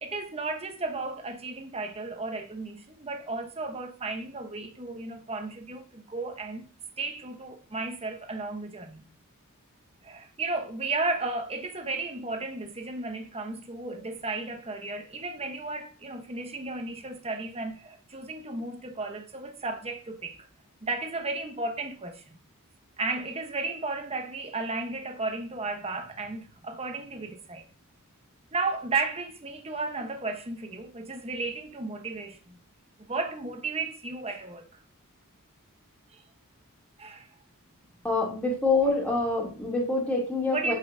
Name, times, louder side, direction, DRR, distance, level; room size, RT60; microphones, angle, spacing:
voice 1, 0.0-6.7 7.0-9.0 10.0-20.5 20.8-22.4 23.0-27.6 28.5-32.6 33.0-34.6 36.1-36.2 37.0-37.3 40.5-40.7, right 3 dB, 25° right, 1.0 m, -34 dB
voice 2, 38.0-40.7, left 3 dB, 5° left, 2.8 m, -26 dB
8.6 x 5.6 x 2.7 m
head